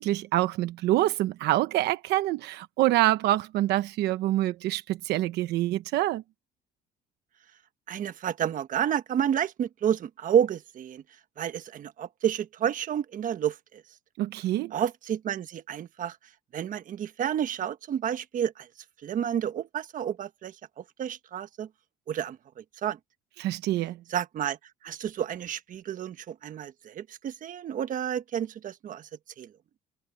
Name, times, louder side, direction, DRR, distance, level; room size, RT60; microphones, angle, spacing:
voice 1, 0.0-6.2 14.2-14.7 23.4-24.0, right 15 dB, 85° right, 1.0 m, -26 dB
voice 2, 7.9-11.0 11.4-13.8 14.7-16.2 16.5-18.7 19.0-21.7 22.1-23.0 24.1-24.6 24.8-29.1 29.4-29.5, right 9 dB, 50° right, 1.3 m, -30 dB
cardioid pair, 110°, 17 cm